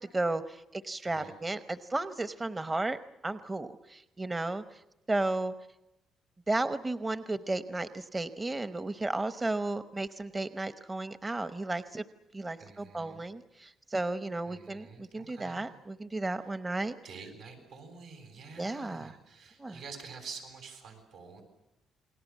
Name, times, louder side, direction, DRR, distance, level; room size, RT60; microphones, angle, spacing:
voice 1, 0.0-3.0 3.2-4.8 5.1-5.5 6.5-12.0 12.3-16.9 18.6-19.1 19.6-19.7, right 2 dB, 20° right, 12 dB, 0.8 m, -34 dB
voice 2, 1.0-1.4 12.6-13.2 14.5-15.7 16.4-16.6 17.0-21.4, right 5 dB, 85° right, 4 dB, 7.4 m, -48 dB
29.0 x 21.0 x 7.4 m, 0.91 s
cardioid pair, 90°, 0 cm